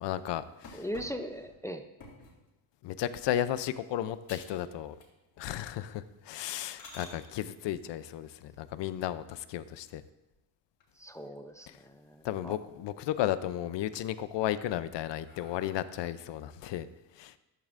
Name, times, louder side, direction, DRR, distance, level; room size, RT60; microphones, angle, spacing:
voice 1, 0.0-0.8 2.8-4.9 5.4-10.0 12.2-16.9 17.2-17.3, left 12 dB, 85° left, 13 dB, 0.6 m, -34 dB
sound 1, 0.6-2.4 3.0-3.3 3.7-3.8 4.2-4.6 4.9-5.4 5.8-5.9 6.4-7.1 9.2-9.8 10.3-10.4 10.8-10.9 11.2-12.0 12.3-12.9 13.3-14.0 14.5-16.2, left 3 dB, 55° left, 3.4 m, -52 dB
voice 2, 0.7-1.8 11.0-12.6, equal, 5° left, 6 dB, 0.4 m, -39 dB
13.5 x 12.0 x 2.5 m, 1.0 s
cardioid pair, 150°, 42 cm